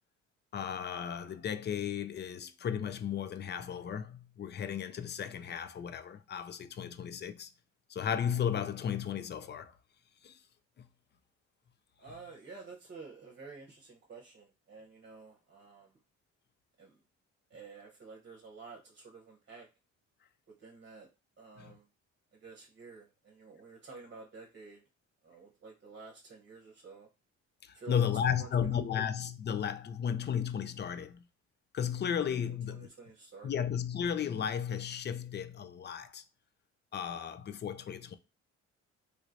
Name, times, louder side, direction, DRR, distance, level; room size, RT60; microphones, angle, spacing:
voice 1, 0.5-7.5 7.9-9.7 10.2-10.4 10.8-10.9 21.6-21.7 27.6-31.2 31.7-32.9 33.4-36.2 36.9-38.2, left 8 dB, 35° left, 0.4 m, -34 dB
voice 2, 12.0-15.9 16.8-17.0 17.5-19.7 20.6-21.1 21.4-21.9 22.3-24.8 25.2-27.1 27.7-28.0 28.3-29.0 32.5-33.6, right 4 dB, 40° right, 0.9 m, -50 dB
3.1 x 3.1 x 2.5 m
cardioid pair, 90°, 30 cm